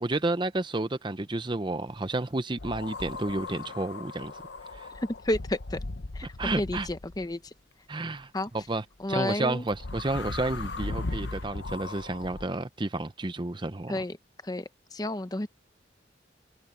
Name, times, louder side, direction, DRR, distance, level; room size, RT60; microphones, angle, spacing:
voice 1, 0.0-4.3 4.7-4.9 6.4-6.9 7.9-14.0, right 2 dB, 25° right, 0.7 m, -31 dB
sound 1, 2.6-7.3 9.7-12.5, left 2 dB, 65° left, 0.9 m, -37 dB
voice 2, 4.9-5.8 6.1-6.3 6.6-7.4 8.3-8.5 9.0-9.6 13.9-14.2 14.4-15.5, left 1 dB, 20° left, 0.8 m, -31 dB
head